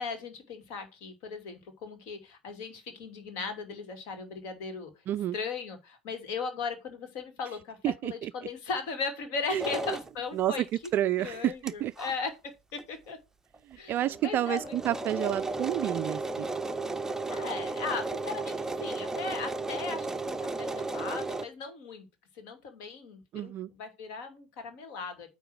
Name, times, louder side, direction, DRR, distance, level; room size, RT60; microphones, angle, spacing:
voice 1, 0.0-4.9 5.3-10.6 11.2-13.2 13.8-14.7 17.3-22.1 22.3-25.3, left 4 dB, 55° left, 2.6 m, -37 dB
voice 2, 7.8-8.3 9.5-9.6 10.3-10.7 10.9-11.9 13.7-16.5 23.3-23.7, right 12 dB, 40° right, 0.3 m, -30 dB
sound 1, 9.6-10.1 10.8-10.9 11.3-11.4 11.7-11.8 12.0-12.1 12.8-12.9 13.1-13.2 13.5-13.6 13.9-21.5, right 2 dB, 10° right, 0.7 m, -34 dB
9.3 x 3.4 x 6.3 m
figure-of-eight pair, 75°, 6 cm